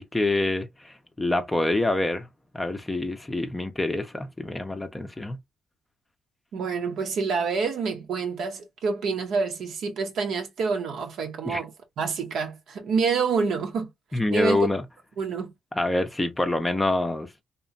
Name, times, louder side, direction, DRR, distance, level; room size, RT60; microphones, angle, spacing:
voice 1, 0.0-2.3 2.5-5.4 11.4-11.6 14.1-14.8 15.7-17.3, left 2 dB, 15° left, 0.5 m, -26 dB
voice 2, 6.5-11.7 12.0-13.9 14.3-14.6 15.2-15.5, right 5 dB, 70° right, 0.7 m, -27 dB
2.9 x 2.1 x 2.5 m
cardioid pair, 90°, 0 cm